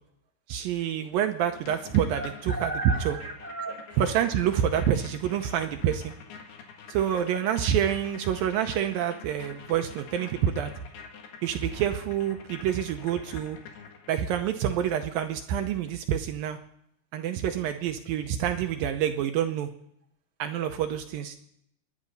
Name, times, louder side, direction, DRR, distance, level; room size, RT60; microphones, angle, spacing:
voice 1, 0.5-2.2 2.6-2.7 3.1-3.2 4.0-6.1 6.9-10.7 11.4-13.6 14.1-16.6 17.1-19.7 20.4-21.4, right 9 dB, 75° right, 7 dB, 2.3 m, -27 dB
sound 1, 1.6-14.4, left 6 dB, 75° left, 3.7 m, -47 dB
voice 2, 2.1-4.0 7.1-7.3 17.4-17.7, right 1 dB, 5° left, 0 dB, 0.8 m, -36 dB
25.5 x 10.5 x 5.3 m, 0.72 s
omnidirectional pair, 4.6 m